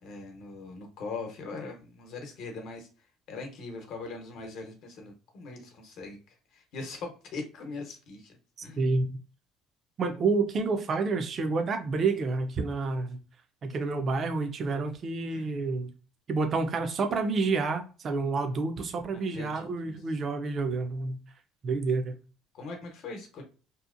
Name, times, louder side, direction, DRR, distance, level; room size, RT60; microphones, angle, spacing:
voice 1, 0.0-2.9 3.3-6.2 6.5-8.4 8.6-8.8 15.3-15.5 19.1-20.0 22.5-23.4, left 3 dB, 65° left, 0.8 m, -41 dB
voice 2, 8.8-9.2 10.0-13.2 13.6-15.9 16.3-21.2 21.6-22.2, right 3 dB, 40° right, 0.4 m, -29 dB
2.7 x 2.0 x 2.5 m
cardioid pair, 110°, 0 cm